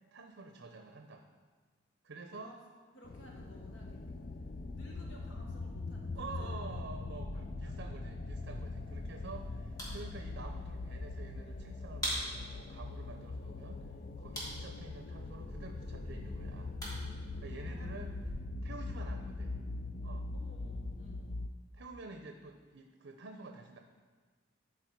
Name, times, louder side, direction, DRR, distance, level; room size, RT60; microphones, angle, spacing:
voice 1, 0.1-1.3 2.0-2.5 6.1-13.9 14.2-16.8 17.4-18.1 18.6-19.6 20.0-20.3 21.7-23.8, right 3 dB, 90° right, 5 dB, 0.7 m, -49 dB
voice 2, 2.9-4.2 4.7-6.6 7.3-7.7 17.5-17.9 18.7-18.8 20.3-21.3, equal, 85° left, -1 dB, 1.2 m, -57 dB
sound 1, 3.0-21.5, left 2 dB, 45° left, 0.4 m, -41 dB
sound 2, 8.3-18.3, equal, 20° left, 2.1 m, -46 dB
12.5 x 4.4 x 4.5 m, 1.5 s
head